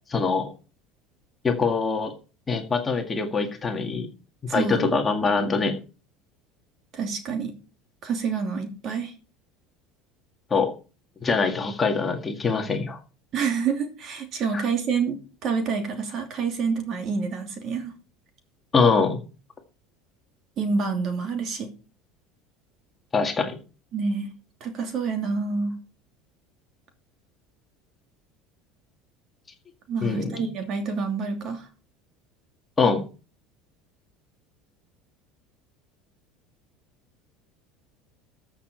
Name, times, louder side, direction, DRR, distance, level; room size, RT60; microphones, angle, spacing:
voice 1, 0.1-0.5 1.4-2.1 2.5-4.1 4.5-5.8 10.5-10.7 11.2-13.0 14.5-14.6 18.7-19.2 23.1-23.6 30.0-30.4 32.8-33.0, left 4 dB, 20° left, 3 dB, 1.9 m, -23 dB
voice 2, 4.5-5.0 6.9-7.5 8.0-9.1 13.3-17.9 20.6-21.7 23.9-24.3 24.6-25.8 29.9-31.7, right 5 dB, 40° right, 5 dB, 2.7 m, -27 dB
14.0 x 6.7 x 4.5 m, 0.35 s
cardioid pair, 140°, 0 cm